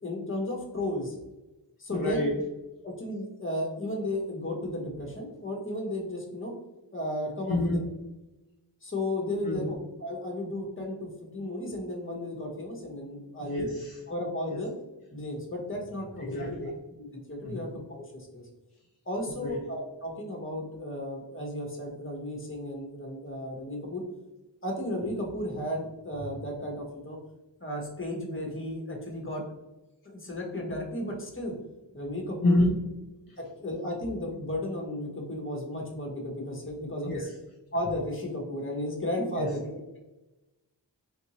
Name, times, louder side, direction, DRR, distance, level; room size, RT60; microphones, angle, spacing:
voice 1, 0.0-1.1 1.8-2.3 2.8-6.5 6.9-7.8 8.8-13.7 14.1-14.7 15.1-16.6 17.0-18.4 19.0-24.0 24.6-27.2 27.6-29.4 30.0-31.6 31.9-32.6 33.4-37.3 37.7-40.0, left 1 dB, 30° left, 0 dB, 1.1 m, -34 dB
voice 2, 1.9-2.3 7.5-7.8 9.4-9.7 13.4-14.0 14.5-14.6 16.2-16.7 17.4-17.7 19.4-19.6 32.4-32.7 37.0-37.2 39.4-39.5, left 1 dB, 50° left, -3 dB, 0.7 m, -28 dB
3.7 x 2.6 x 3.0 m, 1.0 s
cardioid pair, 40°, 44 cm